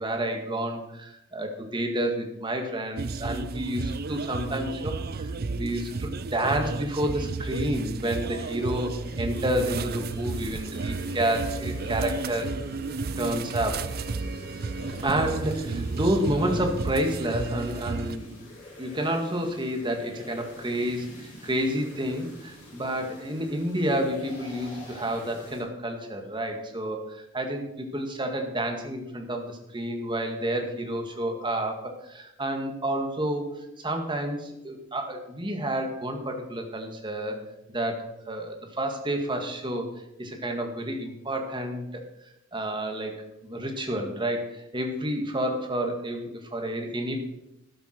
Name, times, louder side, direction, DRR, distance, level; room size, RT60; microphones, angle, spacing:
voice 1, 0.0-13.9 15.0-18.4 18.8-33.5 33.8-37.4 37.7-39.9 40.2-42.0 42.5-43.1 43.4-47.2, right 1 dB, 25° right, 3 dB, 1.8 m, -30 dB
sound 1, 3.0-18.2, right 3 dB, 50° right, 0.5 m, -32 dB
sound 2, 8.0-25.6, left 1 dB, 40° left, 5.7 m, -47 dB
13.0 x 12.0 x 4.5 m, 0.88 s
head